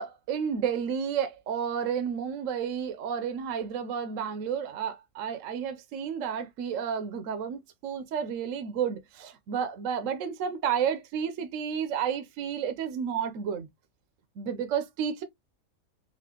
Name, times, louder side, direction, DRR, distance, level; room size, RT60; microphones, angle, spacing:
voice 1, 0.0-13.7 14.4-15.2, right 7 dB, 70° right, 1.0 m, -31 dB
4.2 x 2.5 x 2.8 m
omnidirectional pair, 1.4 m